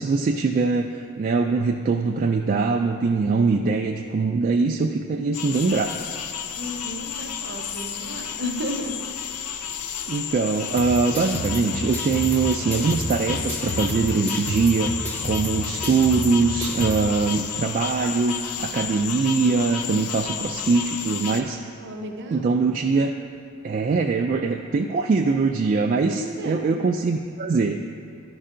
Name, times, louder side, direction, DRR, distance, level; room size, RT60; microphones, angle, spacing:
voice 1, 0.0-5.9 10.1-14.9 15.2-21.6 22.3-23.1 23.6-27.8, right 4 dB, 35° right, 3 dB, 0.3 m, -22 dB
sound 1, 5.3-21.4, left 8 dB, 85° left, 0.5 m, -32 dB
voice 2, 6.6-9.0 21.8-22.7 26.1-26.7, equal, 55° right, 3 dB, 0.8 m, -33 dB
sound 2, 10.8-17.0, equal, 5° left, 0.7 m, -31 dB
11.5 x 5.5 x 3.8 m, 2.3 s
head